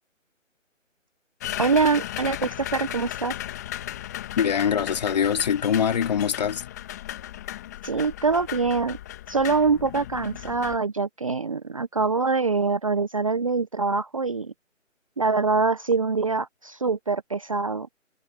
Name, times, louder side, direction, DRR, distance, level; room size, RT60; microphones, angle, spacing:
sound 1, 1.4-10.8, left 13 dB, 15° left, 1.4 m, -36 dB
voice 1, 1.6-3.3 7.8-9.0 9.3-14.5 15.2-17.9, right 4 dB, 25° right, 0.9 m, -24 dB
voice 2, 4.4-6.6, left 8 dB, 30° left, 2.7 m, -23 dB
figure-of-eight pair, 160°, 39 cm